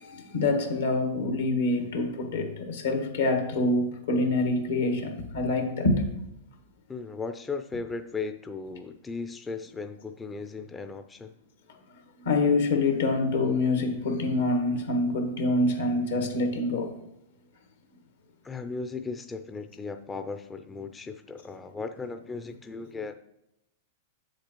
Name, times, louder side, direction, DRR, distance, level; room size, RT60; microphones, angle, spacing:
voice 1, 0.0-6.1 12.2-17.0, left 2 dB, 80° left, 4 dB, 1.4 m, -26 dB
voice 2, 6.9-11.3 18.4-23.1, left 4 dB, 15° left, 8 dB, 0.4 m, -36 dB
7.7 x 6.6 x 3.0 m, 0.83 s
hypercardioid pair, 105°, 0 cm